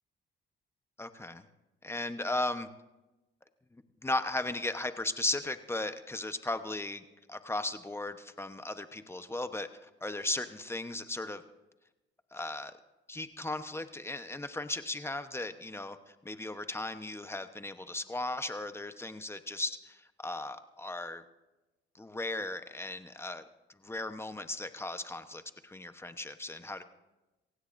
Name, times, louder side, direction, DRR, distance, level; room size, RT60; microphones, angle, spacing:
voice 1, 1.0-1.4 1.8-2.7 3.7-7.0 7.3-11.4 12.3-12.7 13.1-21.2 21.9-23.4 23.8-26.8, left 2 dB, 10° left, 9 dB, 1.0 m, -36 dB
27.5 x 16.0 x 2.6 m, 1.0 s
cardioid pair, 90°, 20 cm